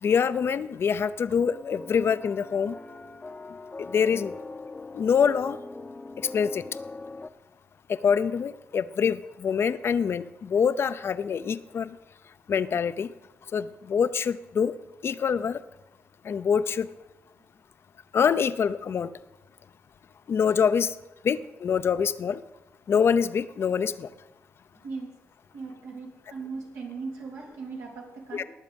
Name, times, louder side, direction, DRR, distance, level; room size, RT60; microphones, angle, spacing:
voice 1, 0.0-2.7 3.8-4.3 4.9-5.6 6.3-6.6 7.9-12.0 12.5-13.1 13.5-14.7 15.0-15.6 16.2-16.9 18.1-19.1 20.3-20.9 21.2-22.4 22.9-24.1 28.3-28.4, left 7 dB, 55° left, 14 dB, 0.6 m, -25 dB
sound 1, 1.4-7.3, left 3 dB, 25° left, 0.8 m, -41 dB
voice 2, 24.8-25.2 25.5-28.5, right 4 dB, 85° right, -1 dB, 3.6 m, -38 dB
19.5 x 7.4 x 5.3 m, 1.0 s
cardioid pair, 80°, 5 cm